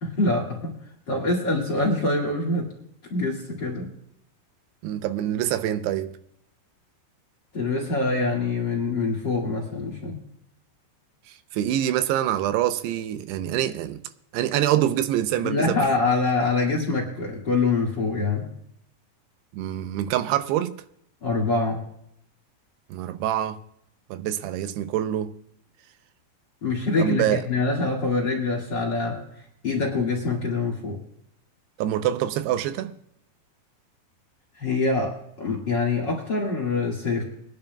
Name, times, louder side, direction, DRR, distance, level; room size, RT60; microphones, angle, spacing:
voice 1, 0.0-0.7 1.1-2.7 3.1-3.9 7.5-10.2 15.4-18.5 21.2-21.8 26.6-29.2 29.6-31.0 34.6-37.2, left 3 dB, 40° left, 1.7 m, -25 dB
voice 2, 4.8-6.1 11.5-14.0 14.3-15.8 19.5-20.7 22.9-23.6 24.1-25.3 27.0-27.4 31.8-32.9, right 12 dB, 85° right, 2.7 m, -25 dB
24.0 x 10.5 x 2.3 m
omnidirectional pair, 4.8 m